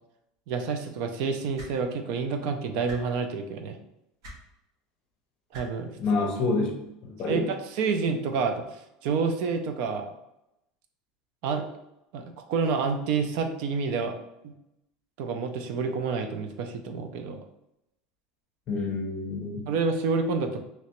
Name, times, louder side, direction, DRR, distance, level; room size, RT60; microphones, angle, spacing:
voice 1, 0.5-3.8 5.5-5.9 7.3-10.1 11.4-11.7 12.1-12.2 12.5-14.1 14.4-14.5 15.2-17.4 19.7-20.6, right 4 dB, 50° right, 6 dB, 0.3 m, -28 dB
sound 1, 1.5-1.7 2.8-3.0 4.2-4.4 5.5-5.6 6.9-7.0, equal, 70° right, 1.2 m, -42 dB
voice 2, 5.9-6.7 7.0-7.5 18.7-19.7, left 3 dB, 30° left, 1 dB, 0.6 m, -28 dB
3.2 x 2.9 x 2.9 m, 0.86 s
cardioid pair, 180°, 3 cm